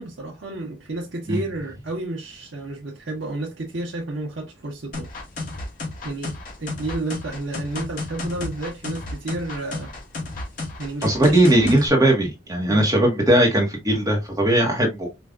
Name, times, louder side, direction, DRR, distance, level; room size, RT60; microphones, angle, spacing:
voice 1, 0.0-5.1 6.0-9.9 10.8-11.5 12.7-12.8, right 2 dB, 90° right, 0.9 m, -31 dB
sound 1, 4.9-11.9, left 2 dB, 50° left, 1.3 m, -32 dB
voice 2, 11.0-15.1, right 1 dB, 20° right, 0.9 m, -19 dB
5.0 x 2.2 x 2.4 m
head